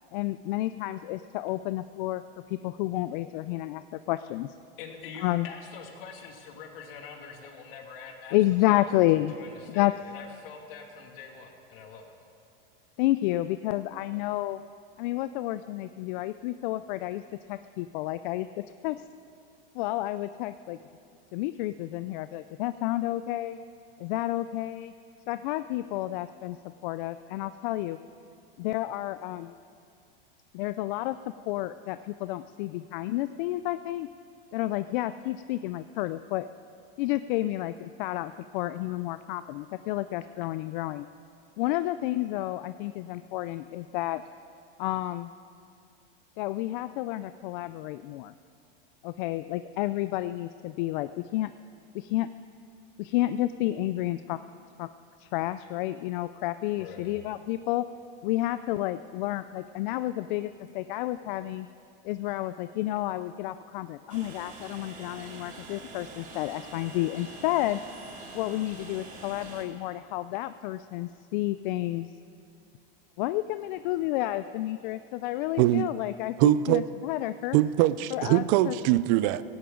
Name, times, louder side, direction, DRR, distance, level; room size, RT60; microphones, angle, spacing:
voice 1, 0.1-2.2 2.5-4.5 5.2-5.5 8.3-9.3 9.7-9.9 13.0-14.6 15.0-17.2 17.5-19.0 19.7-20.8 21.3-23.6 24.0-24.9 25.3-26.6 26.8-28.0 28.6-29.5 30.5-34.1 34.5-36.5 37.0-41.1 41.6-44.2 44.8-45.3 46.4-48.3 49.0-51.5 51.9-52.3 53.0-54.4 54.8-54.9 55.2-57.8 58.2-61.7 62.0-67.8 68.3-72.1 73.2-77.6 78.1-78.7, left 16 dB, 55° left, 12 dB, 0.4 m, -30 dB
voice 2, 4.8-8.4 8.7-8.9 9.3-12.1 56.8-57.1, left 6 dB, 70° left, 2 dB, 2.4 m, -44 dB
Train, 64.1-69.6, right 3 dB, 30° right, 2.5 m, -45 dB
voice 3, 75.6-75.9 76.4-76.8 77.5-79.4, right 15 dB, 50° right, 16 dB, 0.5 m, -22 dB
17.0 x 16.5 x 3.8 m, 2.5 s
supercardioid pair, 135°, 29 cm